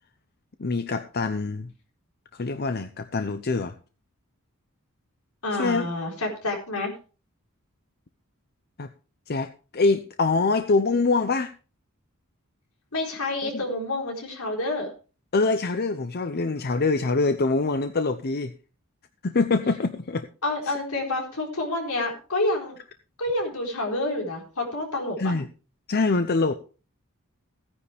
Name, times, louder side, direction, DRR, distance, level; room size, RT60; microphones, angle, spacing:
voice 1, 0.6-1.7 2.3-3.7 5.6-5.9 8.8-8.9 9.3-11.5 13.5-13.6 15.3-18.5 19.2-20.3 25.2-25.5 25.9-26.5, left 3 dB, 45° left, 0.7 m, -24 dB
voice 2, 5.4-6.9 12.9-14.9 20.4-22.8 23.2-25.3, left 2 dB, 85° left, 4.4 m, -28 dB
16.0 x 9.7 x 3.4 m
head